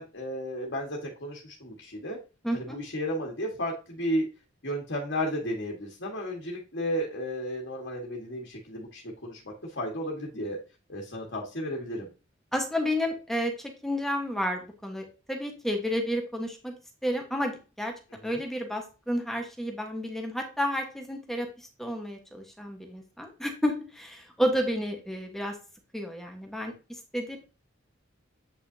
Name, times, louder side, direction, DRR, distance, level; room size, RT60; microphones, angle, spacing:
voice 1, 0.0-2.2 2.5-4.3 4.6-10.6 10.9-12.1 18.2-18.4, equal, 55° left, -1 dB, 1.7 m, -33 dB
voice 2, 2.4-2.8 12.5-16.7 17.0-17.9 18.2-25.5 25.9-27.4, equal, ahead, 2 dB, 1.3 m, -31 dB
8.5 x 5.5 x 2.8 m, 0.32 s
head